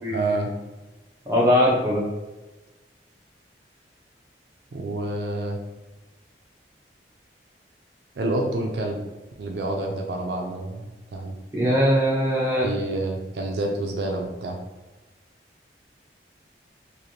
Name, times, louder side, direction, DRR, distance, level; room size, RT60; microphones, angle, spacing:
voice 1, 0.1-0.5 4.7-5.6 8.2-9.0 9.4-11.4 12.6-14.6, right 2 dB, 70° right, 1 dB, 0.4 m, -28 dB
voice 2, 1.3-2.0 11.5-12.7, equal, 15° right, -5 dB, 0.7 m, -20 dB
3.1 x 2.5 x 2.7 m, 1.2 s
head